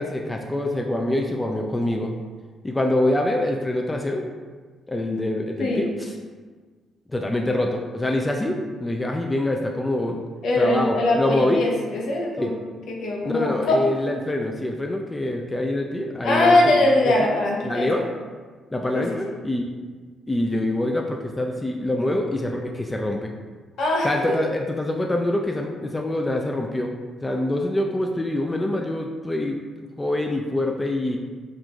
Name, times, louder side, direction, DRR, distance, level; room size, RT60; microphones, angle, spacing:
voice 1, 0.0-2.1 2.6-4.3 4.9-6.1 7.1-10.2 10.6-11.7 12.4-12.5 13.2-16.6 17.0-17.1 17.6-18.0 18.7-19.6 20.3-23.3 24.0-26.9 27.2-29.6 30.0-31.2, left 1 dB, 15° left, 2 dB, 0.3 m, -25 dB
voice 2, 5.6-5.9 10.4-12.6 12.9-13.8 16.2-18.0 18.9-19.2 23.8-24.4, left 2 dB, 65° left, -2 dB, 0.8 m, -21 dB
6.0 x 2.5 x 2.3 m, 1.5 s
cardioid pair, 95°, 0 cm